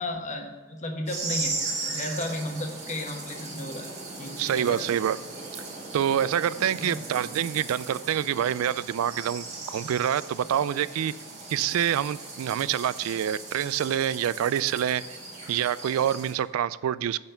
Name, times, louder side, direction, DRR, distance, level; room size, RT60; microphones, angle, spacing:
voice 1, 0.0-1.5 1.9-3.9 4.2-4.9 6.8-7.0, left 1 dB, 35° left, 3 dB, 1.2 m, -34 dB
sound 1, 1.1-16.3, right 3 dB, 35° right, 2.1 m, -38 dB
voice 2, 4.4-5.2 5.9-11.1 11.5-15.0 15.5-17.2, right 9 dB, 90° right, 19 dB, 0.3 m, -26 dB
10.0 x 4.3 x 6.6 m, 1.4 s
head